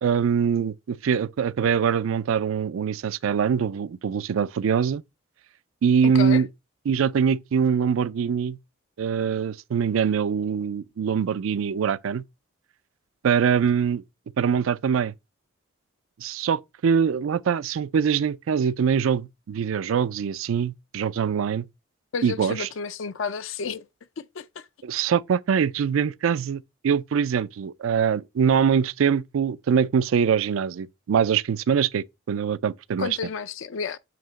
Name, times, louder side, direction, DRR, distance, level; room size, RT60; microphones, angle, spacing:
voice 1, 0.0-5.0 5.8-6.5 6.9-8.6 9.0-12.2 13.2-14.0 14.4-15.1 16.2-21.7 22.2-22.7 24.8-33.1, right 7 dB, 80° right, 0.4 m, -23 dB
voice 2, 6.0-6.4 22.1-23.8 24.2-24.7 33.0-34.0, left 6 dB, 70° left, 0.4 m, -31 dB
7.7 x 2.9 x 5.0 m
head